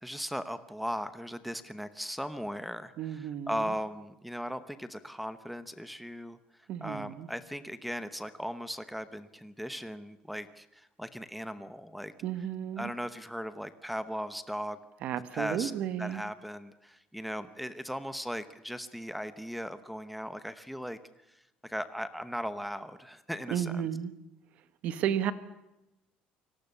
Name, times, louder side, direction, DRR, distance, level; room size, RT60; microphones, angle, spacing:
voice 1, 0.0-12.1 12.8-14.8 15.3-15.7 16.0-21.0 21.3-23.9, equal, ahead, 12 dB, 0.9 m, -38 dB
voice 2, 3.0-3.7 6.7-7.3 12.2-12.9 15.0-16.2 23.5-24.1 24.8-25.3, right 10 dB, 50° right, 13 dB, 1.5 m, -33 dB
29.5 x 19.0 x 6.8 m, 0.93 s
cardioid pair, 175°, 3 cm